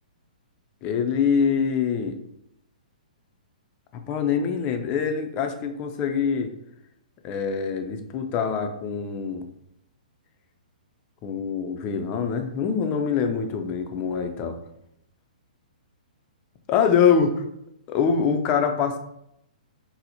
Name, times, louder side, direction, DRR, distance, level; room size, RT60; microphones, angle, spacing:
voice 1, 0.8-2.2 3.9-6.5 7.2-9.4 11.2-14.6 16.7-17.4 17.9-19.0, left 6 dB, 30° left, 5 dB, 0.4 m, -24 dB
4.1 x 2.0 x 2.7 m, 0.79 s
hypercardioid pair, 135°, 5 cm